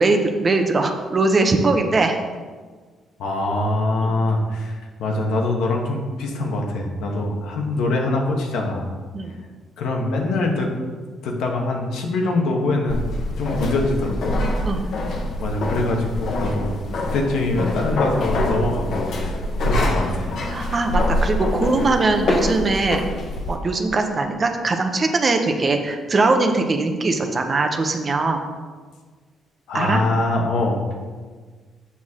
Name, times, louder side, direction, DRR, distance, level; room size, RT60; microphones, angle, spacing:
voice 1, 0.0-2.2 4.0-4.1 9.1-9.4 14.6-14.8 20.5-23.1 23.5-28.4 29.7-30.0, right 3 dB, 35° right, 5 dB, 0.9 m, -21 dB
voice 2, 3.2-8.9 9.8-10.7 11.2-13.1 13.4-14.3 15.4-20.3 29.7-30.8, left 2 dB, 85° left, 1 dB, 1.2 m, -23 dB
sound 1, 12.9-23.6, left 1 dB, 70° left, 1.1 m, -25 dB
7.2 x 6.3 x 3.7 m, 1.5 s
cardioid pair, 90°, 0 cm